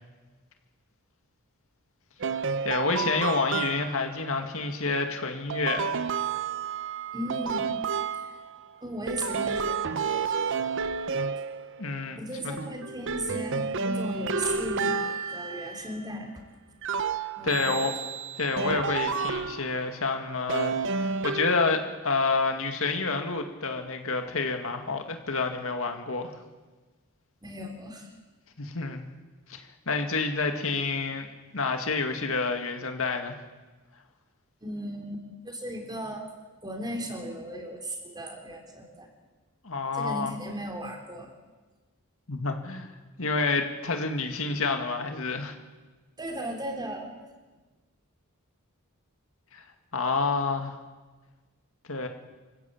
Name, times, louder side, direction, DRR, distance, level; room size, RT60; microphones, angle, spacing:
sound 1, 2.2-4.2 5.5-8.7 9.1-12.1 12.6-16.1 16.8-19.9 20.5-21.9, right 5 dB, 60° right, 0.9 m, -31 dB
voice 1, 2.6-5.9 11.8-12.2 12.4-12.5 17.4-17.9 18.4-26.3 28.6-29.0 29.5-31.3 31.5-33.3 39.6-40.3 42.3-42.9 43.2-45.6 49.5-49.6 49.9-50.7 51.9-52.1, left 3 dB, 65° left, 5 dB, 2.2 m, -28 dB
voice 2, 7.1-7.8 8.2-8.3 8.8-10.3 12.2-16.3 17.4-17.7 27.4-28.1 34.6-36.3 36.6-39.1 39.9-41.3 46.2-47.1, right 1 dB, 20° right, 3 dB, 3.5 m, -36 dB
25.5 x 15.0 x 8.7 m, 1.3 s
head